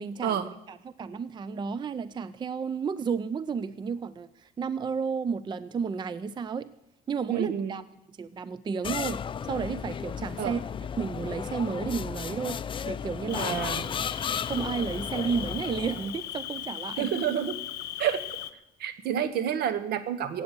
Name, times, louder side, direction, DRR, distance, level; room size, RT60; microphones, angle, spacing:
voice 1, 0.0-0.4 0.7-6.7 7.1-7.8 8.2-10.6 11.0-13.5 14.5-17.1, right 6 dB, 25° right, 15 dB, 0.5 m, -32 dB
voice 2, 7.3-7.7 10.4-10.6 13.3-13.9 17.0-17.6 18.0-18.2 18.8-20.4, right 9 dB, 70° right, 12 dB, 1.2 m, -29 dB
sound 1, 8.8-16.2, left 7 dB, 30° left, 0.4 m, -34 dB
Cricket, 13.3-18.5, left 12 dB, 75° left, 0.9 m, -38 dB
17.0 x 8.3 x 6.8 m, 0.86 s
cardioid pair, 110°, 17 cm